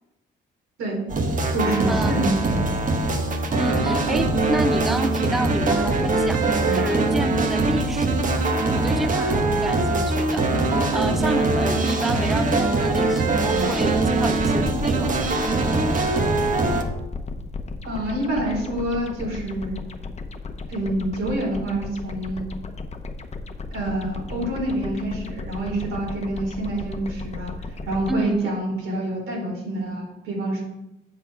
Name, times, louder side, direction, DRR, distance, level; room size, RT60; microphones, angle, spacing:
sound 1, 1.1-16.8, right 2 dB, 40° right, 1.1 m, -22 dB
voice 1, 1.5-2.6 17.8-19.9 20.7-22.5 23.7-27.6 27.8-30.6, right 1 dB, 90° right, -2 dB, 3.3 m, -27 dB
voice 2, 3.6-8.4 8.7-10.7 10.9-15.4 28.1-28.5, right 1 dB, ahead, 11 dB, 0.4 m, -30 dB
sound 2, 13.6-28.2, left 3 dB, 35° left, 0.8 m, -35 dB
7.6 x 6.8 x 4.7 m, 0.96 s
cardioid pair, 90°, 20 cm